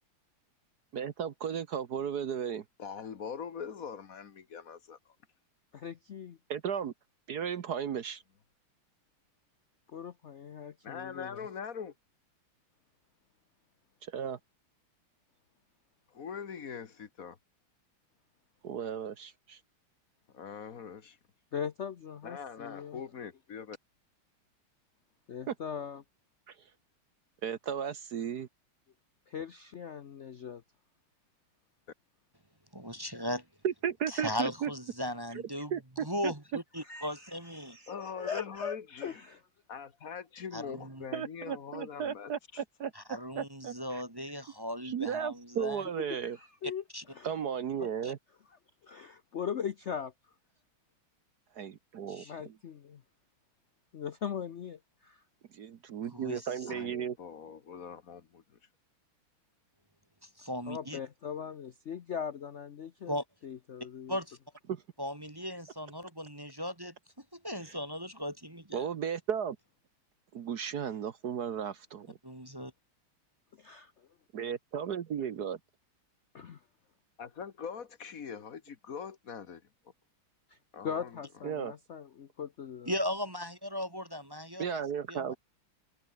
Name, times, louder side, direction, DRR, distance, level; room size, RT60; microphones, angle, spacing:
voice 1, 0.9-2.6 6.5-6.9 7.3-8.2 14.0-14.4 18.6-19.6 25.5-25.6 26.5-26.6 27.4-28.5 33.6-34.7 35.7-36.3 41.1-42.9 43.4-44.0 44.8-46.4 47.2-48.2 51.5-52.5 55.5-57.2 64.7-64.8 67.7-67.8 68.7-69.6 70.3-72.2 74.3-75.6 81.4-81.7 84.6-85.4, right 8 dB, 55° right, 1.3 m, -35 dB
voice 2, 2.8-5.0 10.8-11.9 16.1-17.4 20.3-21.2 22.2-23.8 37.9-39.2 39.7-42.6 56.7-58.4 77.2-79.6 80.7-81.2, left 6 dB, 45° left, 1.7 m, -42 dB
voice 3, 5.7-6.4 9.9-11.5 21.5-23.0 25.3-26.0 29.3-30.6 36.8-39.4 46.2-46.8 47.1-47.3 48.8-50.1 52.2-53.0 53.9-55.2 60.7-63.2 63.4-64.2 73.6-74.1 76.3-76.6 80.5-80.6 80.8-82.9, left 7 dB, 75° left, 0.6 m, -40 dB
voice 4, 32.7-33.4 34.1-35.7 36.0-37.8 40.5-41.1 42.9-45.8 46.9-47.0 47.8-48.1 52.1-52.3 56.1-56.5 60.2-61.0 63.1-63.2 64.1-64.4 65.0-68.9 72.2-72.7 82.8-84.8 85.1-85.4, equal, 10° right, 1.5 m, -37 dB
omnidirectional pair, 2.4 m